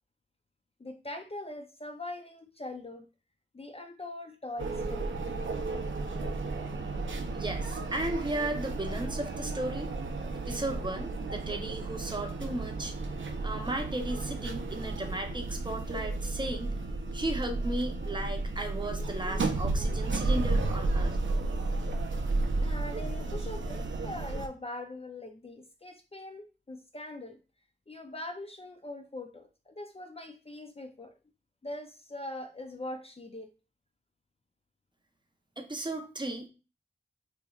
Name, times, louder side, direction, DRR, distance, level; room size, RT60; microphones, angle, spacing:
voice 1, 0.8-3.1 3.5-5.2 22.6-27.4 27.9-31.1 31.6-33.5, left 1 dB, 30° left, 5 dB, 0.4 m, -42 dB
sound 1, 4.6-24.5, right 2 dB, 80° right, 0.5 m, -33 dB
voice 2, 7.3-9.9 10.5-12.9 13.4-16.7 17.1-21.2 35.6-36.5, right 1 dB, 25° right, 4 dB, 0.7 m, -35 dB
4.2 x 2.8 x 2.3 m, 0.33 s
wide cardioid pair, 65°, 20 cm